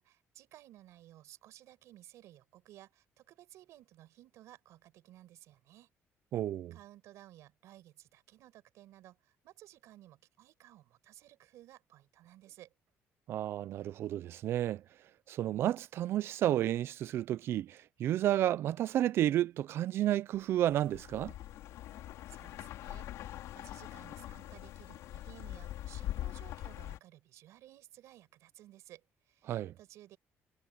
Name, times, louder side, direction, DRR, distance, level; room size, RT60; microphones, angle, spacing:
voice 1, 0.0-5.9 6.7-12.7 22.3-30.2, right 14 dB, 70° right, 6.2 m, -57 dB
voice 2, 6.3-6.8 13.3-14.8 15.3-21.3 29.4-29.7, right 12 dB, 55° right, 0.4 m, -31 dB
sound 1, 20.7-27.0, left 14 dB, 85° left, 3.8 m, -43 dB
cardioid pair, 180°, 5 cm